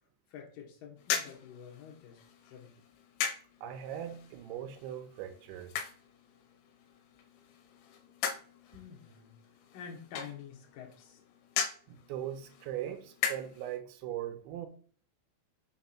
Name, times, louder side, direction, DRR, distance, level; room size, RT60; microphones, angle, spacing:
voice 1, 0.3-2.7 8.7-9.3 9.7-11.2, left 7 dB, 60° left, 2.5 m, -48 dB
sound 1, 1.0-13.8, left 8 dB, 85° left, 3.2 m, -40 dB
voice 2, 3.6-5.7 11.9-14.7, right 11 dB, 80° right, 3.1 m, -40 dB
6.9 x 3.5 x 5.7 m
omnidirectional pair, 5.5 m